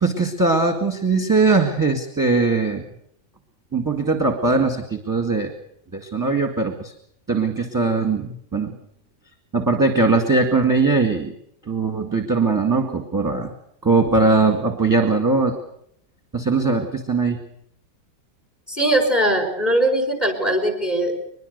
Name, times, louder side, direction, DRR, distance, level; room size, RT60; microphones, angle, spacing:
voice 1, 0.0-2.8 3.7-5.5 5.9-6.9 7.3-8.8 9.5-11.3 11.7-13.5 13.8-15.6 16.3-17.4, right 3 dB, 10° right, 4 dB, 1.8 m, -20 dB
voice 2, 18.7-21.2, right 1 dB, 20° left, 5 dB, 5.0 m, -20 dB
23.0 x 21.5 x 6.7 m, 0.73 s
omnidirectional pair, 2.0 m